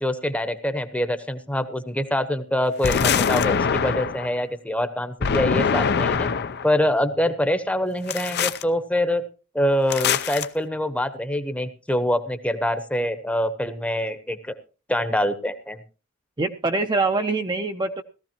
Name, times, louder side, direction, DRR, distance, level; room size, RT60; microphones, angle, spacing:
voice 1, 0.0-6.3 6.6-9.2 9.5-14.6 14.9-15.8, left 1 dB, 5° left, 11 dB, 1.0 m, -25 dB
sound 1, 2.8-4.3 5.2-6.7 8.1-8.6 9.9-10.5, left 6 dB, 50° left, 0.6 m, -23 dB
voice 2, 16.4-18.0, right 3 dB, 20° right, 5 dB, 0.7 m, -24 dB
18.0 x 14.0 x 2.9 m, 0.34 s
head